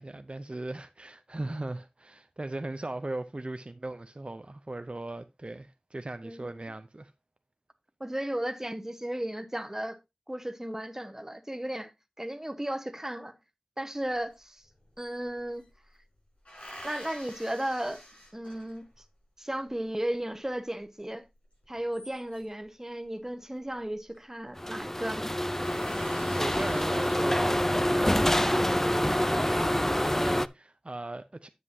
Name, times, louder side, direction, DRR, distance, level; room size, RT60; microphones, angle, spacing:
voice 1, 0.0-7.1 26.3-31.5, right 2 dB, 50° right, 0.6 m, -38 dB
voice 2, 6.2-6.7 8.0-10.0 10.3-11.9 12.2-13.3 13.8-14.6 15.0-15.6 16.8-18.0 18.3-18.8 19.4-21.3 21.7-25.3, right 1 dB, 20° right, 1.1 m, -35 dB
sound 1, 14.3-14.4 14.6-15.7 16.5-19.0 21.6-22.6 23.8-24.2 24.5-24.6 24.9-25.0 25.3-27.9 28.4-29.1, equal, 75° left, 6.3 m, -48 dB
sound 2, 24.6-30.5, left 1 dB, 15° left, 0.4 m, -26 dB
9.9 x 7.7 x 2.7 m
wide cardioid pair, 50°, 2 cm